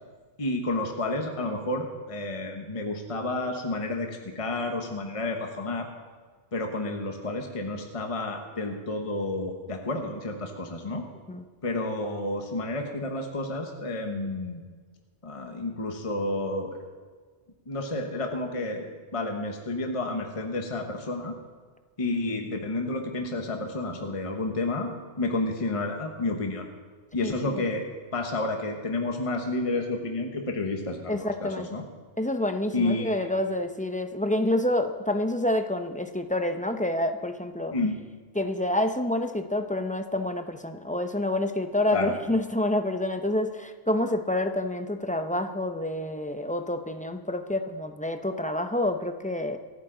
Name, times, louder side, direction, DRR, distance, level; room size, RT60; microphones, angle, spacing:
voice 1, 0.4-5.9 6.5-11.1 11.6-14.6 15.2-16.8 17.7-21.4 22.0-26.7 27.1-27.9 28.1-31.8 32.7-33.3 37.7-38.0 41.9-42.1, left 2 dB, 30° left, 3 dB, 1.2 m, -30 dB
voice 2, 31.1-31.7 32.2-37.7 38.4-49.6, left 1 dB, 10° left, 6 dB, 0.5 m, -28 dB
26.5 x 9.1 x 3.9 m, 1.5 s
omnidirectional pair, 1.1 m